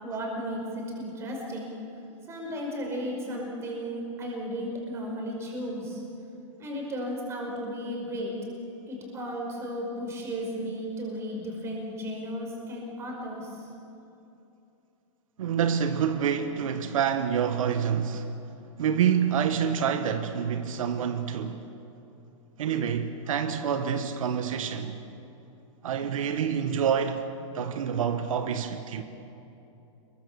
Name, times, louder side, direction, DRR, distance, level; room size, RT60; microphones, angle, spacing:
voice 1, 0.0-1.7 2.3-6.0 6.6-8.3 8.9-13.7, equal, 15° right, 5.4 m, -34 dB
voice 2, 15.4-18.3 18.8-21.7 22.6-25.0 25.8-27.2 27.5-29.0, right 8 dB, 80° right, 1.6 m, -27 dB
27.5 x 22.5 x 7.2 m
supercardioid pair, 165°, 17 cm